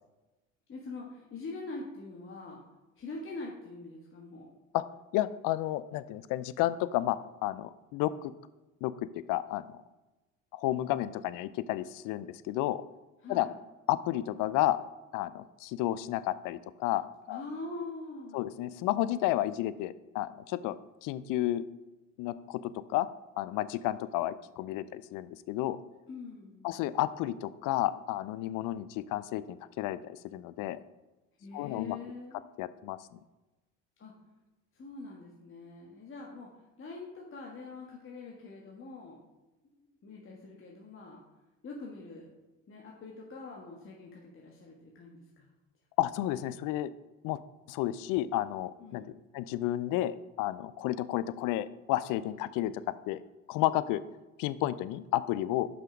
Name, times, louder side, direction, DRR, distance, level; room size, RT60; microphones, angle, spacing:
voice 1, 0.7-2.6 3.0-4.5 13.2-13.5 17.3-18.4 26.1-26.7 31.4-32.4 34.0-34.1 34.7-36.5 36.8-39.2 39.8-41.2 41.6-42.3 42.7-45.5 48.8-49.1, left 3 dB, 30° left, -2 dB, 1.4 m, -44 dB
voice 2, 5.1-8.3 8.8-9.6 10.5-12.8 13.3-13.5 13.9-14.8 15.1-17.4 18.3-21.6 22.2-23.1 23.4-25.8 26.6-30.8 31.5-32.0 32.6-33.2 46.0-46.9 47.2-47.4 47.7-49.0 49.3-53.2 53.5-54.0 54.4-55.7, left 14 dB, 55° left, 15 dB, 0.5 m, -31 dB
5.9 x 5.7 x 5.0 m, 1.1 s
hypercardioid pair, 70°, 39 cm